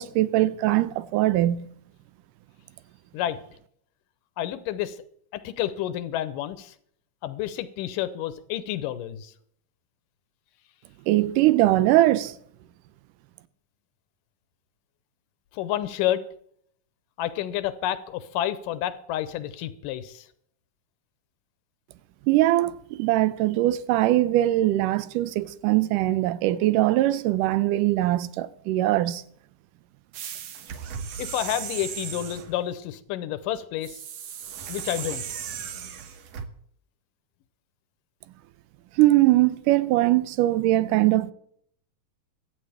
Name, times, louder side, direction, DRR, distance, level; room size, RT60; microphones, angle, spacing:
voice 1, 0.0-1.7 11.1-12.4 22.3-29.2 39.0-41.3, right 15 dB, 80° right, 2.2 m, -21 dB
voice 2, 4.4-5.0 5.3-6.7 7.2-9.3 15.5-16.2 17.2-20.3 31.2-34.0 34.7-35.3, left 12 dB, 90° left, 2.5 m, -29 dB
sound 1, 30.1-32.5 33.8-36.5, right 8 dB, 65° right, 1.9 m, -36 dB
23.0 x 9.3 x 3.5 m
omnidirectional pair, 3.8 m